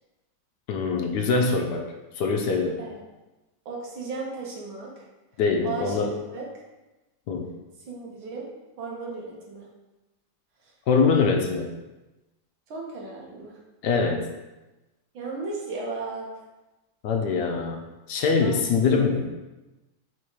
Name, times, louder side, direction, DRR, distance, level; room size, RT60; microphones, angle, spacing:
voice 1, 0.7-1.9 2.1-2.8 5.4-6.1 7.3-7.5 10.9-11.7 13.8-14.3 17.0-17.8 18.1-19.3, left 4 dB, 70° left, 2 dB, 1.1 m, -23 dB
voice 2, 3.7-5.0 5.6-6.0 6.3-6.4 7.9-8.5 8.8-9.7 12.7-13.6 15.1-16.3 18.4-18.6 18.9-19.1, right 3 dB, 85° right, -3 dB, 2.1 m, -35 dB
4.5 x 4.4 x 4.9 m, 1.1 s
omnidirectional pair, 2.1 m